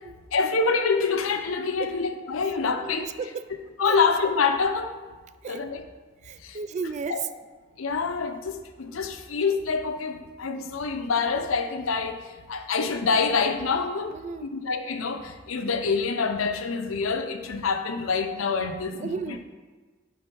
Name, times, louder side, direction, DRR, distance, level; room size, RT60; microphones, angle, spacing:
voice 1, 0.3-3.1 3.8-5.0 5.5-5.8 6.4-6.6 7.1-7.2 7.8-14.2 14.4-19.4, left 4 dB, 85° left, 7 dB, 0.6 m, -26 dB
voice 2, 2.8-3.5 3.9-4.0 5.4-5.6 6.2-7.3 14.1-14.5 18.9-19.4, right 5 dB, 35° right, 12 dB, 0.3 m, -34 dB
8.6 x 3.7 x 4.6 m, 1.4 s
head